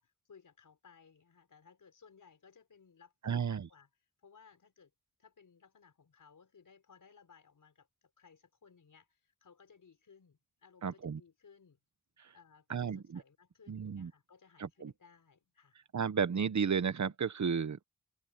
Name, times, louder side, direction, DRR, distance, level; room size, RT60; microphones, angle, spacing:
voice 1, 0.0-3.9 4.2-4.9 5.2-11.8 12.3-15.8, left 6 dB, 80° left, 5.9 m, -62 dB
voice 2, 3.2-3.7 10.8-11.2 12.7-13.2 13.7-14.1 14.6-14.9 15.9-17.8, right 6 dB, 60° right, 1.1 m, -33 dB
wide cardioid pair, 90°, 31 cm